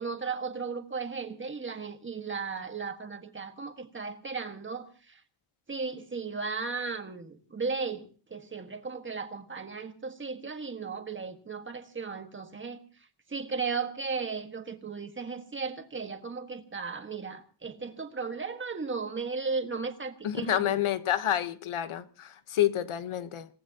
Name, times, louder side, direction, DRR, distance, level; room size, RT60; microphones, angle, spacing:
voice 1, 0.0-5.2 5.7-8.0 8.3-12.8 13.3-20.8, right 4 dB, 25° right, 1.6 m, -35 dB
voice 2, 20.2-23.5, left 11 dB, 90° left, 1.2 m, -29 dB
27.0 x 18.0 x 2.9 m
wide cardioid pair, 175°, 48 cm